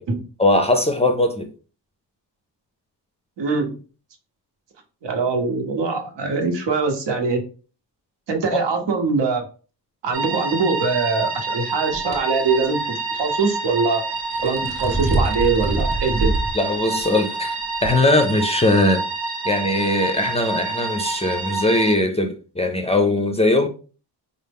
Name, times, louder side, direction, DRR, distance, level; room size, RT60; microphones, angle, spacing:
voice 1, 0.4-1.5 16.5-19.0 19.4-23.7, left 1 dB, 15° left, 5 dB, 0.3 m, -20 dB
voice 2, 3.4-3.8 5.0-7.4 8.3-9.4 10.0-14.0 14.4-16.3, right 4 dB, 85° right, 4 dB, 0.9 m, -22 dB
sound 1, 10.1-22.0, right 3 dB, 60° right, 0.7 m, -28 dB
sound 2, 11.9-12.2 14.2-16.5 17.0-17.1 17.8-17.9, right 2 dB, 15° right, 0.7 m, -24 dB
4.2 x 2.0 x 3.4 m, 0.37 s
wide cardioid pair, 115°, 42 cm